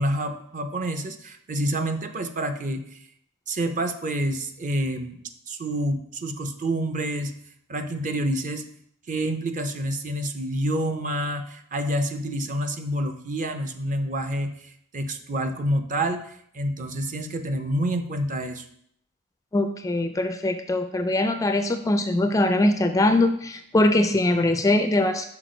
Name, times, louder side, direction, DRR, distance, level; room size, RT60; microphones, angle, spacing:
voice 1, 0.0-3.0 3.5-5.2 5.5-7.3 7.7-8.6 9.1-16.2 16.5-18.6, right 1 dB, 35° right, 7 dB, 0.6 m, -28 dB
voice 2, 19.5-25.3, left 1 dB, 15° left, 8 dB, 0.4 m, -22 dB
5.9 x 5.0 x 5.0 m, 0.70 s
head